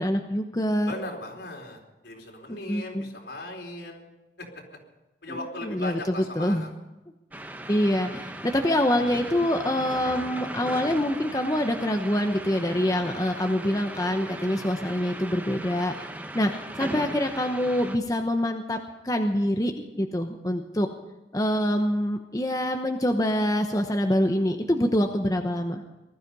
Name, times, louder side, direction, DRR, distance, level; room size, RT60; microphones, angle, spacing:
voice 1, 0.0-0.9 2.5-3.1 5.3-6.6 7.7-16.1 16.3-18.8 19.0-19.7 20.0-20.9 21.3-25.8, left 1 dB, 20° left, 4 dB, 1.0 m, -25 dB
voice 2, 0.9-4.1 4.4-4.5 5.2-6.7, left 1 dB, 70° left, 0 dB, 4.2 m, -38 dB
sound 1, 7.3-18.0, right 1 dB, 10° right, 1.0 m, -38 dB
20.0 x 13.0 x 5.4 m, 1.0 s
head